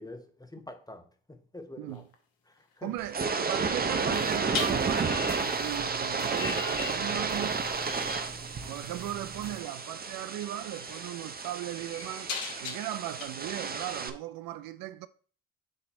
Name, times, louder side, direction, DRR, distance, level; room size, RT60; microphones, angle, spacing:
voice 1, 0.0-2.0 2.5-2.9, left 2 dB, 10° left, 1.1 m, -46 dB
voice 2, 1.8-2.1 2.8-7.9 8.7-15.1, right 14 dB, 75° right, 0.5 m, -38 dB
sound 1, 1.9-2.1 4.5-7.6 7.8-8.3 9.8-9.9 10.4-13.2, left 5 dB, 70° left, 1.3 m, -40 dB
sound 2, 3.0-14.1, right 4 dB, 25° right, 0.9 m, -32 dB
sound 3, 3.9-9.6, right 5 dB, 50° right, 1.4 m, -45 dB
8.5 x 3.3 x 4.2 m
supercardioid pair, 60°, 36 cm